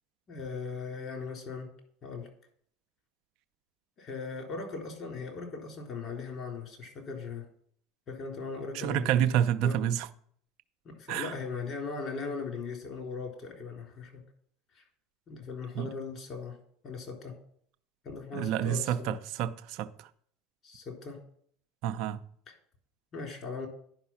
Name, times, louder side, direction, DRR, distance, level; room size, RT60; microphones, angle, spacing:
voice 1, 0.3-1.7 2.0-2.3 4.0-7.5 8.1-9.1 9.6-9.8 10.8-14.2 14.7-14.8 15.3-16.6 16.8-17.4 18.0-19.2 20.6-21.2 23.1-23.7, left 4 dB, 45° left, 3.6 m, -39 dB
voice 2, 8.7-10.1 11.1-11.3 15.7-15.9 18.3-20.1 21.8-22.2, right 10 dB, 60° right, 0.6 m, -29 dB
10.5 x 5.4 x 5.8 m
hypercardioid pair, 85°, 0 cm